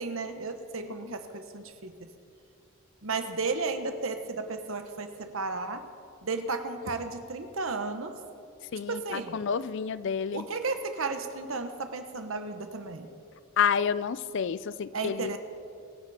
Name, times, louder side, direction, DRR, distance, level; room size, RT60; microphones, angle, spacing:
voice 1, 0.0-1.9 3.0-5.8 6.2-8.2 8.9-9.4 10.3-13.1 14.9-15.4, right 3 dB, 70° right, 7 dB, 1.2 m, -33 dB
voice 2, 8.7-10.4 13.6-15.4, left 7 dB, 60° left, 17 dB, 0.4 m, -29 dB
23.5 x 10.0 x 4.3 m, 2.5 s
head